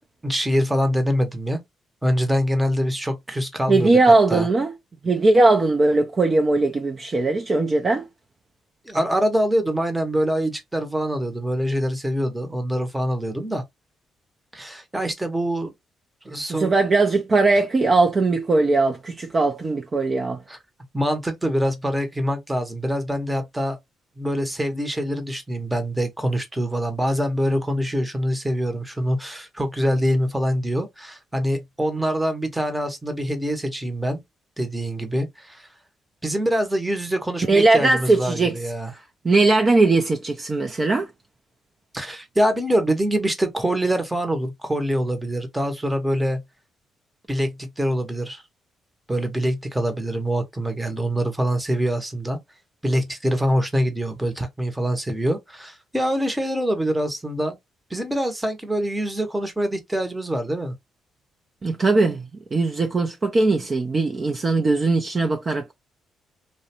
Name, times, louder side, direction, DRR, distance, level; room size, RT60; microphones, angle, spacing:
voice 1, 0.2-1.6 2.0-3.9 4.3-4.5 8.9-13.6 14.5-15.7 16.2-16.7 20.5-20.6 20.9-23.8 24.2-34.2 34.6-35.7 36.2-38.9 41.9-46.4 47.3-48.4 49.1-52.4 52.8-57.6 57.9-60.7, equal, 10° right, 0.7 m, -24 dB
voice 2, 3.7-4.7 5.0-8.1 16.5-20.4 37.5-38.6 39.2-41.1 61.6-65.7, right 3 dB, 35° right, 0.4 m, -19 dB
2.5 x 2.1 x 2.8 m
cardioid pair, 90°, 0 cm